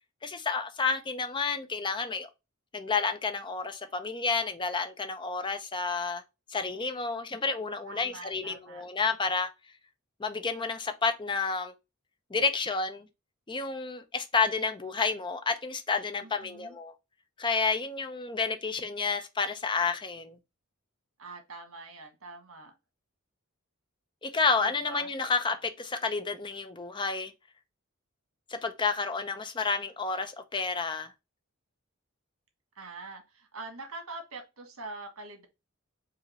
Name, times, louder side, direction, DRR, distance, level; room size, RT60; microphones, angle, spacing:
voice 1, 0.2-2.3 2.7-6.2 6.5-9.5 10.2-11.7 12.3-13.1 13.5-16.9 17.4-20.4 24.2-27.3 28.5-31.1, left 4 dB, 25° left, 0.6 m, -30 dB
voice 2, 7.8-8.8 16.2-16.8 21.2-22.7 24.6-25.1 32.7-35.5, right 3 dB, 90° right, 1.4 m, -44 dB
4.8 x 2.5 x 3.1 m
head